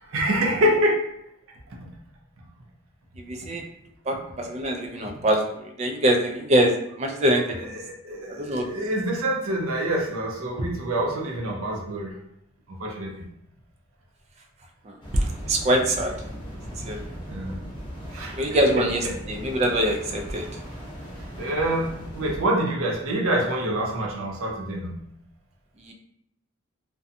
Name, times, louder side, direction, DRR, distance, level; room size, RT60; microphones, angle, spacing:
voice 1, 0.0-1.1 1.8-1.9 8.0-12.1 12.8-13.1 16.9-17.0 17.2-17.6 18.1-18.4 21.4-24.9, right 1 dB, 80° right, 0 dB, 0.6 m, -26 dB
voice 2, 3.2-3.6 4.1-7.7 8.4-8.7 14.8-16.1 16.8-17.1 18.3-20.5 25.8-25.9, right 1 dB, 30° right, 2 dB, 0.3 m, -24 dB
sound 1, 15.0-22.4, equal, 25° left, 0.6 m, -38 dB
2.6 x 2.2 x 2.6 m, 0.76 s
head